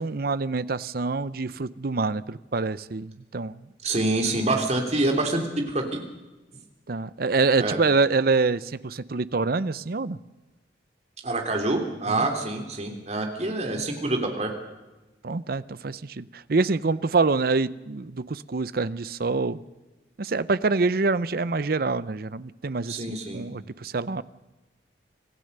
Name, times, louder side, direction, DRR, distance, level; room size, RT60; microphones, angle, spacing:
voice 1, 0.0-3.5 6.9-10.2 12.2-12.3 15.2-19.6 20.2-24.2, right 3 dB, 55° right, 16 dB, 0.6 m, -26 dB
voice 2, 3.8-6.0 7.6-7.8 11.2-14.5 22.9-23.4, right 2 dB, 40° right, 3 dB, 3.3 m, -26 dB
26.0 x 15.5 x 6.7 m, 1.1 s
head